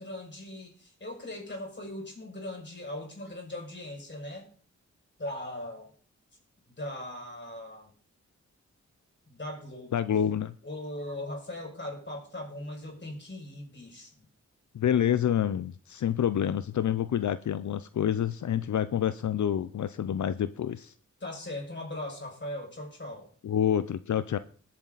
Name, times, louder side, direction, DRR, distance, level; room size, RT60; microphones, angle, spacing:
voice 1, 0.0-4.5 5.2-5.9 6.7-7.9 9.3-10.1 10.6-14.1 21.2-23.3, left 1 dB, 35° left, 1 dB, 5.9 m, -39 dB
voice 2, 9.9-10.6 14.7-20.9 23.4-24.4, left 9 dB, 75° left, 14 dB, 0.6 m, -28 dB
20.5 x 7.6 x 4.0 m, 0.43 s
wide cardioid pair, 90°, 30 cm